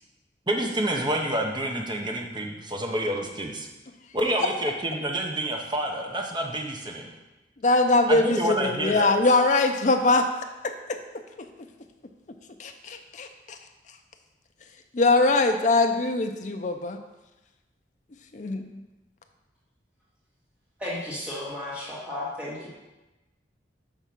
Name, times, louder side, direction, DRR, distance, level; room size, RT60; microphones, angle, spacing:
voice 1, 0.5-3.7 4.1-7.1 8.1-9.1, right 1 dB, 25° right, 1 dB, 0.8 m, -28 dB
voice 2, 7.6-10.3 10.6-11.0 11.4-11.5 12.6-13.6 14.9-17.0 18.3-18.8, left 2 dB, 40° left, 6 dB, 0.5 m, -22 dB
voice 3, 20.8-22.7, left 1 dB, 5° right, -9 dB, 2.2 m, -34 dB
6.7 x 3.6 x 5.9 m, 1.1 s
head